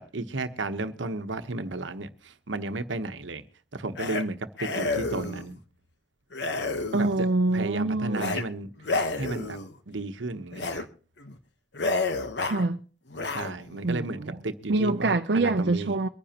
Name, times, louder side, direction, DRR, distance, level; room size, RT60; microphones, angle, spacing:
voice 1, 0.0-3.4 3.7-5.6 6.9-7.1 7.5-9.6 9.9-10.9 13.3-16.0, right 2 dB, 80° right, 1.0 m, -33 dB
sound 1, 4.0-4.2 4.6-5.5 6.3-7.3 8.1-8.4 8.8-9.7 10.5-10.8 11.2-11.4 11.7-12.7 13.1-13.8, left 3 dB, 70° left, 1.1 m, -30 dB
voice 2, 6.9-8.4 12.5-12.8 13.8-14.4 14.7-16.1, right 2 dB, 60° right, 0.6 m, -25 dB
23.5 x 10.0 x 2.9 m
head